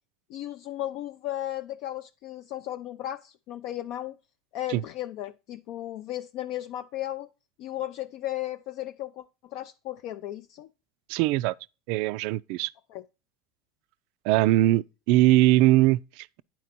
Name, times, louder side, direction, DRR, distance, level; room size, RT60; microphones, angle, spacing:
voice 1, 0.3-4.2 4.5-7.3 7.6-10.7 12.9-13.0, left 13 dB, 60° left, 0.4 m, -35 dB
voice 2, 11.1-11.5 11.9-12.7 14.2-16.4, right 16 dB, 65° right, 0.3 m, -21 dB
9.2 x 4.3 x 4.2 m
supercardioid pair, 105°, 0 cm